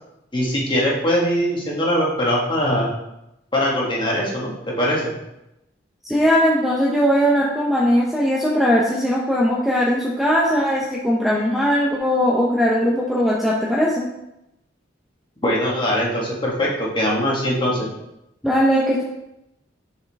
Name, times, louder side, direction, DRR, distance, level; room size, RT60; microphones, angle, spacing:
voice 1, 0.3-2.9 3.5-5.1 15.4-17.9, equal, 25° left, -4 dB, 1.6 m, -21 dB
voice 2, 6.0-14.1 18.4-19.0, equal, ahead, -4 dB, 0.7 m, -19 dB
6.3 x 5.5 x 3.5 m, 0.87 s
head